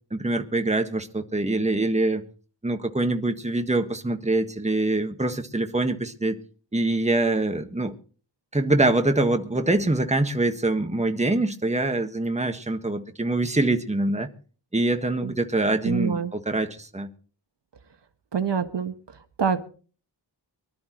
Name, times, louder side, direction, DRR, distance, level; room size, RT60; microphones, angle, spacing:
voice 1, 0.1-2.2 2.6-6.4 6.7-7.9 8.5-14.3 14.7-17.1, right 2 dB, 15° right, 1.6 m, -24 dB
voice 2, 15.8-16.3 18.3-18.9 19.4-19.6, right 6 dB, 70° right, 1.4 m, -25 dB
24.0 x 12.5 x 3.1 m
wide cardioid pair, 90°, 44 cm